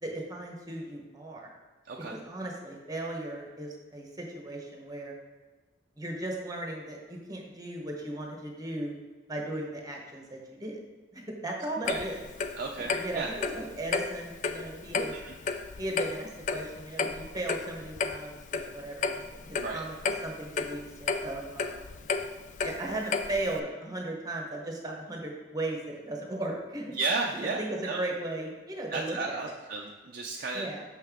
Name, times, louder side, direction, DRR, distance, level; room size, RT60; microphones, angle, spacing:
voice 1, 0.0-1.5 2.1-5.1 6.0-8.9 9.3-10.8 11.1-12.2 12.9-15.1 15.8-20.0 20.2-22.1 22.6-26.9 27.4-29.4 30.5-30.8, right 1 dB, 20° right, 0 dB, 1.0 m, -37 dB
voice 2, 1.9-2.2 11.9-12.1 12.6-13.3 15.1-15.3 19.6-19.8 26.9-28.0 28.9-30.7, right 3 dB, 45° right, 0 dB, 0.4 m, -33 dB
Clock, 11.9-23.6, left 4 dB, 40° left, 0.3 m, -33 dB
6.3 x 5.4 x 3.6 m, 1.3 s
head